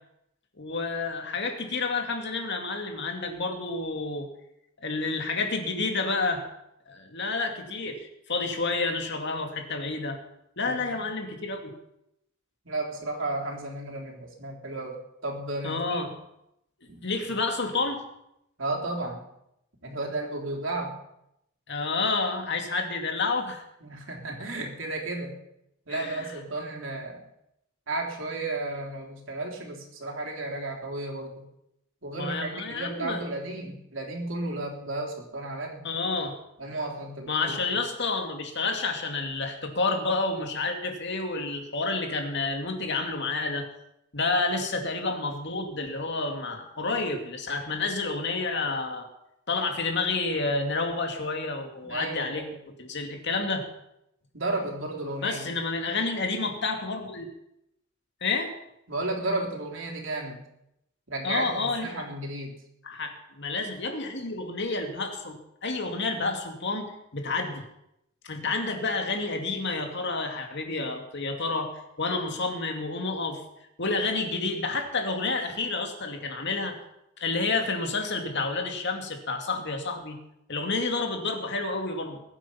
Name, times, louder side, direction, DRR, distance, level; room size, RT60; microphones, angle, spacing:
voice 1, 0.6-4.3 4.8-6.4 6.9-10.2 10.6-11.7 15.6-16.1 17.0-18.0 21.7-23.6 25.9-26.3 32.1-33.2 35.8-36.4 37.3-43.7 44.1-49.1 49.5-52.4 52.8-53.7 55.2-57.3 58.2-58.5 61.2-62.0 62.8-67.6 68.2-71.7 72.0-73.4 73.8-76.8 77.2-80.2 80.5-82.2, left 3 dB, 60° left, 4 dB, 2.4 m, -29 dB
voice 2, 10.6-11.0 12.7-16.0 16.9-17.0 18.6-19.2 19.8-20.9 23.8-25.3 25.9-27.2 27.9-31.4 32.0-35.8 36.6-37.6 51.8-52.6 54.3-55.5 58.9-60.4 61.1-62.5, right 2 dB, 65° right, 1 dB, 3.6 m, -33 dB
21.5 x 9.0 x 5.7 m, 0.81 s
head